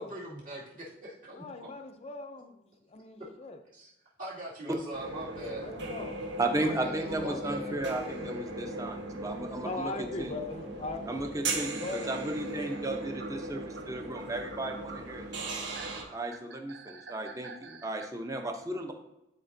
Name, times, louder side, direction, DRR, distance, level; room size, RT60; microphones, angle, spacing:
voice 1, 0.0-1.8 3.7-3.9 4.2-5.7 6.6-8.1, right 1 dB, 45° right, -7 dB, 2.4 m, -42 dB
voice 2, 1.4-3.6 5.4-6.2 6.5-7.6 9.6-11.0 11.8-12.2, left 3 dB, 35° left, 7 dB, 0.5 m, -40 dB
sound 1, 4.9-16.0, right 2 dB, 85° right, 1.4 m, -38 dB
voice 3, 6.4-10.3 11.1-15.4 16.1-18.9, right 2 dB, 20° right, 4 dB, 0.7 m, -35 dB
sound 2, 10.9-11.0 12.4-12.5 13.2-18.1, right 4 dB, 70° right, 0.6 m, -48 dB
11.5 x 4.3 x 2.7 m, 0.89 s
head